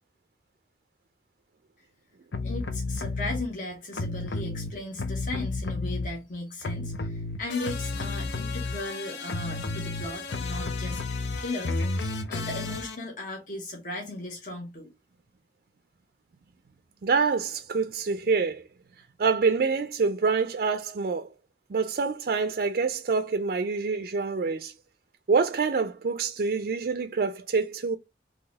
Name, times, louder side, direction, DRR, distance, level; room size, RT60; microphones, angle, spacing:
sound 1, 2.3-3.4 3.9-6.3 6.6-13.0, left 3 dB, 80° left, 0.6 m, -32 dB
voice 1, 2.4-11.0 11.3-14.9, left 2 dB, 50° left, 1.3 m, -37 dB
voice 2, 17.0-18.6 19.2-21.3 21.7-24.7 25.3-28.0, right 4 dB, 55° right, 0.4 m, -26 dB
3.9 x 3.0 x 4.0 m
head